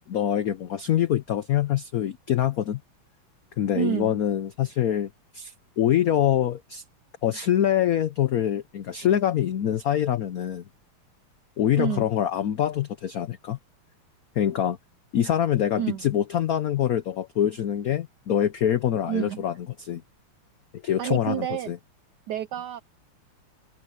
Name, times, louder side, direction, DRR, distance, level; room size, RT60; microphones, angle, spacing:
voice 1, 0.1-2.8 3.6-6.8 7.2-10.6 11.6-13.6 14.4-14.8 15.1-20.0 20.8-21.8, left 10 dB, 80° left, 0.8 m, -25 dB
voice 2, 3.7-4.2 11.8-12.1 15.8-16.0 19.1-19.5 21.0-21.7 22.3-22.8, right 11 dB, 85° right, 0.9 m, -29 dB
omnidirectional pair, 2.4 m